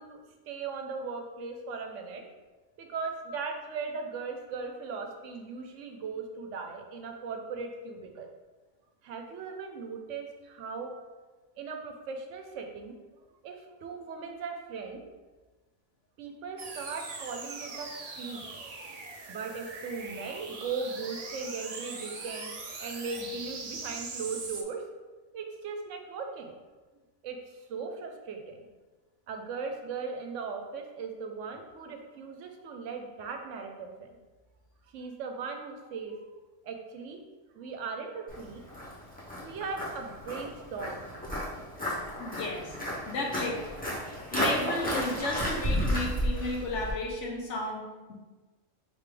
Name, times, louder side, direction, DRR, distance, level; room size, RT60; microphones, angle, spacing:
voice 1, 0.0-2.2 2.8-8.3 9.0-10.9 11.6-13.0 13.4-15.0 16.2-17.9 18.2-18.6 19.3-22.5 22.8-24.9 25.3-26.5 27.2-28.6 29.3-34.2 34.9-36.3 36.6-37.2 37.5-38.6 39.4-41.1, right 4 dB, 75° right, 4 dB, 0.9 m, -38 dB
sound 1, 16.6-24.6, right 3 dB, 55° right, 0.4 m, -41 dB
Walk footsteps, 38.3-46.9, equal, 10° left, 1.0 m, -33 dB
voice 2, 42.2-42.8 43.1-43.6 44.3-47.8, left 2 dB, 70° left, 0 dB, 1.1 m, -33 dB
4.6 x 3.3 x 3.3 m, 1.2 s
omnidirectional pair, 1.3 m